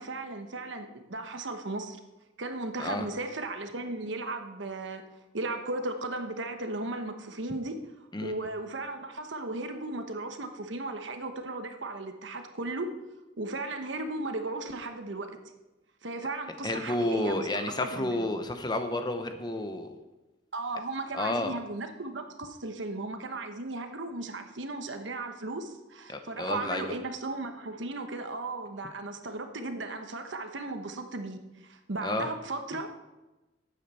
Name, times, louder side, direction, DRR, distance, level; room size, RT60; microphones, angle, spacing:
voice 1, 0.0-2.0 2.4-5.0 5.3-7.8 8.2-13.0 13.4-15.3 16.0-18.3 20.5-32.9, right 2 dB, 75° right, 7 dB, 1.1 m, -36 dB
voice 2, 16.6-20.0 21.1-21.6 26.1-27.0 32.0-32.3, left 1 dB, 20° left, 7 dB, 0.8 m, -31 dB
12.0 x 8.7 x 4.3 m, 1.1 s
head